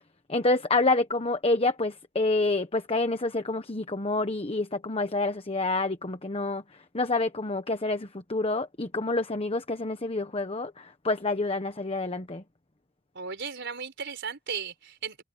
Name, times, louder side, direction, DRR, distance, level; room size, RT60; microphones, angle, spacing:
voice 1, 0.3-6.6 6.9-12.4, left 2 dB, 30° left, 1.2 m, -28 dB
voice 2, 13.1-15.2, right 6 dB, 60° right, 4.7 m, -36 dB
head